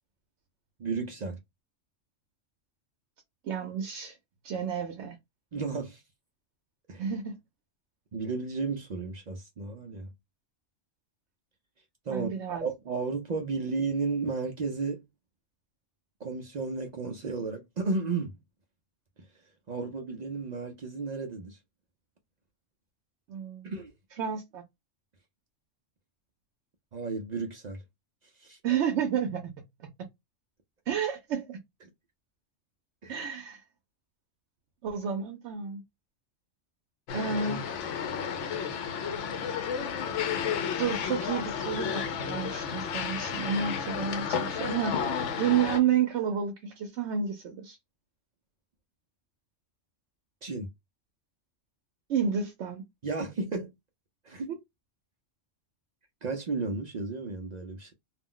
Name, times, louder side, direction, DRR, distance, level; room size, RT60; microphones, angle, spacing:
voice 1, 0.8-1.4 5.5-6.0 6.9-7.1 8.1-10.1 12.1-15.0 16.2-18.4 19.7-21.6 23.6-23.9 26.9-27.8 28.4-28.6 33.0-33.3 50.4-50.7 53.0-53.7 54.2-54.5 56.2-57.9, right 4 dB, 55° right, 0.4 m, -33 dB
voice 2, 3.4-4.1 4.4-5.2 7.0-7.4 12.1-12.7 23.3-23.7 24.2-24.6 28.6-29.5 30.9-31.6 33.1-33.6 34.8-35.8 37.1-37.6 40.8-44.9 45.4-47.8 52.1-52.8, right 7 dB, 75° right, 0.9 m, -30 dB
sound 1, 37.1-45.8, left 7 dB, 85° left, 0.9 m, -32 dB
2.4 x 2.0 x 3.7 m
omnidirectional pair, 1.2 m